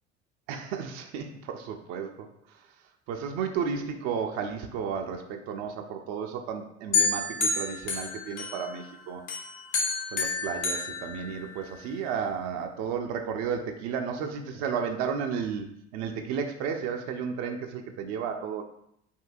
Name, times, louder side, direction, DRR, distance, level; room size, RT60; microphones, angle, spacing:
voice 1, 0.5-2.6 3.1-9.2 10.1-18.6, right 6 dB, 55° right, 4 dB, 0.5 m, -33 dB
sound 1, 6.9-8.9 9.3-11.8, left 4 dB, 65° left, 1.0 m, -29 dB
5.4 x 2.7 x 2.4 m, 0.75 s
figure-of-eight pair, 60°, 34 cm